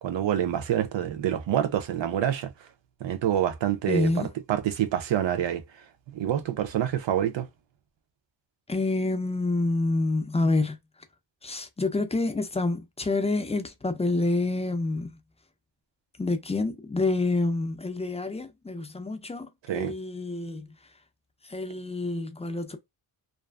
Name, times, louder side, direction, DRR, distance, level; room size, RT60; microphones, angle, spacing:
voice 1, 0.0-2.5 3.0-5.6 6.1-7.5 19.7-19.9, right 10 dB, 90° right, 0.6 m, -27 dB
voice 2, 3.9-4.3 8.7-10.8 11.4-15.1 16.2-20.7 21.5-22.8, left 2 dB, 15° left, 0.4 m, -27 dB
2.5 x 2.4 x 2.2 m
wide cardioid pair, 135°, 43 cm